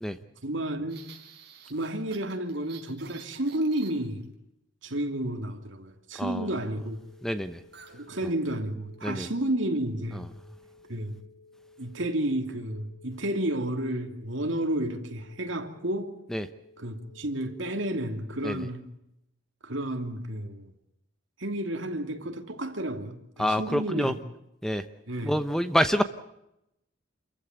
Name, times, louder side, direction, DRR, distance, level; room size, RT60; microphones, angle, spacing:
voice 1, 0.4-1.1 1.7-4.3 4.8-7.0 7.9-10.3 10.9-11.2 11.8-16.1 16.8-18.8 19.6-20.7 21.4-24.1 25.1-25.4, right 1 dB, 70° right, 2.8 m, -31 dB
sound 1, 0.9-4.3 7.7-8.0 8.3-8.5 8.9-9.3, right 6 dB, 55° right, 4.5 m, -50 dB
sound 2, 6.7-17.5, left 3 dB, 60° left, 4.8 m, -56 dB
voice 2, 7.2-7.6 9.0-9.3 16.3-16.5 18.4-18.6 23.4-24.1 24.6-24.8 25.2-26.0, equal, 5° left, 0.9 m, -26 dB
28.0 x 15.0 x 9.4 m
head